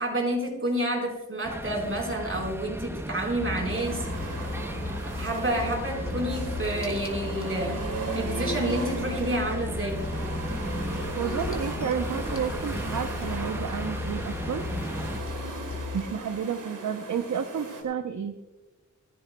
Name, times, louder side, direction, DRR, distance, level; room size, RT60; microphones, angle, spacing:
voice 1, 0.0-4.1 5.2-7.8 8.1-10.0, right 1 dB, 45° right, 0 dB, 4.4 m, -29 dB
sound 1, 1.4-15.2, right 1 dB, 10° right, 0.9 m, -36 dB
sound 2, 3.4-16.1, left 5 dB, 45° left, 3.1 m, -36 dB
sound 3, 3.7-17.8, right 3 dB, 90° right, 2.4 m, -37 dB
voice 2, 11.2-14.6 15.9-18.4, right 7 dB, 70° right, 6 dB, 0.8 m, -31 dB
28.5 x 10.0 x 2.3 m, 1.2 s
wide cardioid pair, 70°, 31 cm